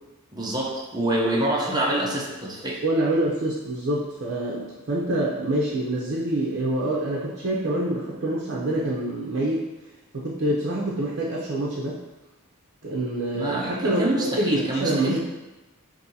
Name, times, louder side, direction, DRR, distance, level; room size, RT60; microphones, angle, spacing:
voice 1, 0.3-2.8 13.3-15.2, right 1 dB, 20° right, -3 dB, 0.7 m, -26 dB
voice 2, 2.8-9.7 10.1-12.0 12.8-15.2, right 1 dB, 55° right, -5 dB, 0.7 m, -26 dB
5.4 x 2.7 x 2.7 m, 1.1 s
head